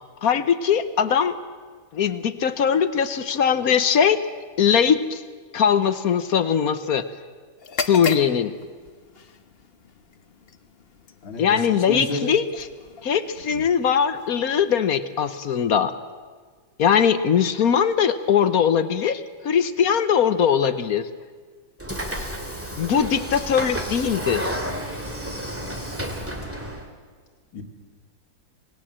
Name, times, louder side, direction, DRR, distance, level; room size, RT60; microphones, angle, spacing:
voice 1, 0.2-1.4 1.9-4.2 4.6-5.2 5.5-7.0 7.9-8.5 11.4-12.5 13.0-15.9 16.8-21.1 22.8-24.6, left 7 dB, 55° left, 12 dB, 1.2 m, -21 dB
sound 1, 7.6-15.4, left 4 dB, 40° left, 1.0 m, -37 dB
voice 2, 11.2-12.3 13.5-13.7 27.5-27.6, left 2 dB, 80° left, -3 dB, 2.8 m, -31 dB
Train / Sliding door, 21.8-26.9, equal, 5° right, 2.3 m, -31 dB
27.5 x 19.5 x 7.5 m, 1.5 s
omnidirectional pair, 2.1 m